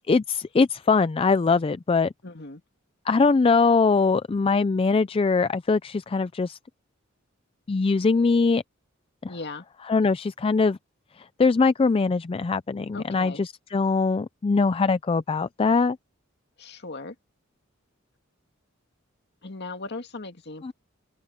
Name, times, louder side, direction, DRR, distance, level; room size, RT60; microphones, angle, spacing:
voice 1, 0.0-2.1 3.1-6.6 7.7-8.6 9.2-9.3 9.9-10.8 11.4-16.0 20.6-20.7, left 4 dB, 25° left, 0.4 m, -22 dB
voice 2, 2.2-2.6 9.3-9.6 12.9-13.4 16.6-17.2 19.4-20.7, left 3 dB, 55° left, 2.2 m, -37 dB
open air
head